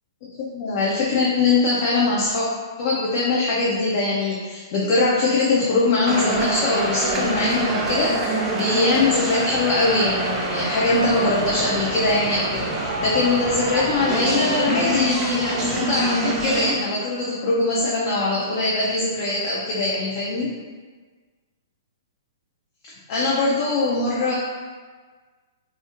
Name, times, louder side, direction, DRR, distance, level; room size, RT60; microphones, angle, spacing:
voice 1, 0.3-2.5 2.8-20.5 23.1-24.3, left 3 dB, 45° left, -6 dB, 0.4 m, -22 dB
sound 1, 6.1-16.7, right 1 dB, 25° right, 0.4 m, -25 dB
2.8 x 2.0 x 2.4 m, 1.5 s
hypercardioid pair, 120°, 2 cm